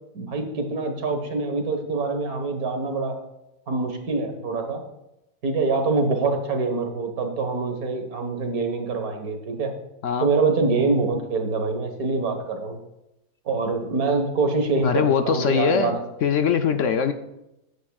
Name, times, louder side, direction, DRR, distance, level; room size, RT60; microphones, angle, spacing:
voice 1, 0.1-3.2 3.7-4.8 5.4-9.7 10.2-12.8 13.5-16.0, right 3 dB, 75° right, 5 dB, 1.9 m, -25 dB
voice 2, 14.8-17.1, left 7 dB, 65° left, 8 dB, 0.9 m, -22 dB
16.0 x 9.4 x 2.4 m, 0.89 s
omnidirectional pair, 1.6 m